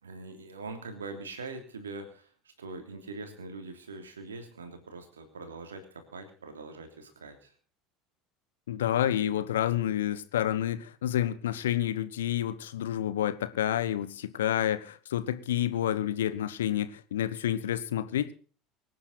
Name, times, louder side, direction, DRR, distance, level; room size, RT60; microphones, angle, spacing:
voice 1, 0.0-7.5, right 3 dB, 75° right, 3.1 m, -43 dB
voice 2, 8.7-18.3, left 11 dB, 70° left, 1.1 m, -29 dB
24.5 x 9.6 x 4.1 m
figure-of-eight pair, 70°, 0 cm